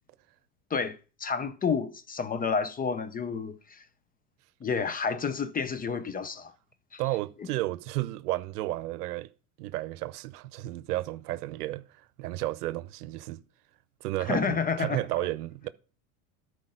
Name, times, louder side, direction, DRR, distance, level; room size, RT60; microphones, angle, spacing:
voice 1, 0.7-3.8 4.6-6.5 6.9-7.0 14.3-15.0, left 5 dB, 20° left, 0.5 m, -30 dB
voice 2, 7.0-9.3 9.6-11.8 12.2-13.4 14.0-15.7, right 16 dB, 80° right, 0.8 m, -32 dB
13.0 x 4.9 x 3.7 m
hypercardioid pair, 95°, 46 cm